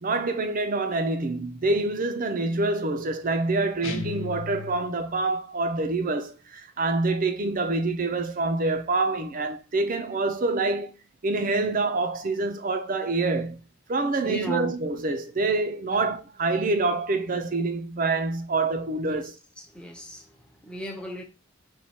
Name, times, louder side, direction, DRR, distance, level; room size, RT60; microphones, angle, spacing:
voice 1, 0.0-11.0 11.2-13.6 13.9-19.3, right 3 dB, 40° right, 0.5 m, -26 dB
sound 1, 3.8-5.2, left 4 dB, 70° left, 0.7 m, -36 dB
voice 2, 14.2-14.7 15.9-16.2 19.0-19.3 19.6-21.2, equal, 5° left, 0.7 m, -36 dB
4.5 x 2.3 x 4.2 m
head